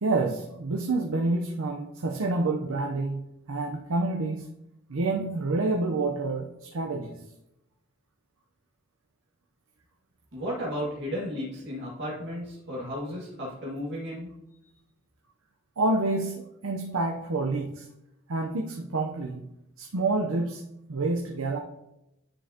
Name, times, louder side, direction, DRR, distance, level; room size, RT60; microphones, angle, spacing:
voice 1, 0.0-4.5 4.9-7.2 15.8-17.9 18.3-19.5 19.8-20.6 20.9-21.6, right 2 dB, 75° right, 1 dB, 0.7 m, -28 dB
voice 2, 10.3-14.3, equal, 55° right, -8 dB, 1.9 m, -34 dB
9.9 x 5.3 x 2.9 m, 0.86 s
head